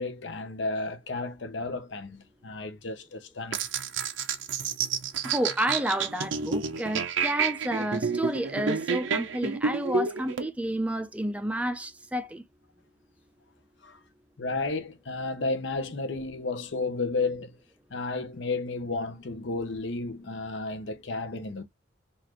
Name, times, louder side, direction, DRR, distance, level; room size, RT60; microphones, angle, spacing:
voice 1, 0.0-3.6 13.8-14.0 14.4-17.6 17.9-21.6, left 3 dB, 70° left, 0.8 m, -32 dB
sound 1, 3.5-10.5, right 5 dB, 80° right, 0.6 m, -29 dB
voice 2, 5.2-12.4, right 1 dB, 5° right, 0.4 m, -30 dB
4.0 x 2.5 x 2.9 m
head